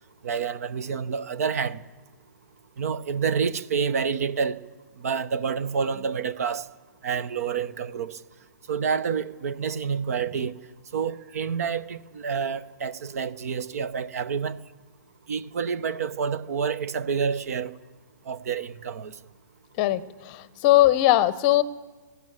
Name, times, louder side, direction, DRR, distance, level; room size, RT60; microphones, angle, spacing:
voice 1, 0.2-1.8 2.8-4.6 5.0-6.6 7.0-8.2 8.7-10.5 10.9-14.6 15.3-17.7 18.3-19.1, right 6 dB, 50° right, 0.8 m, -28 dB
voice 2, 19.8-21.6, left 15 dB, 30° left, 0.8 m, -20 dB
19.5 x 16.0 x 8.7 m
figure-of-eight pair, 120°, 10 cm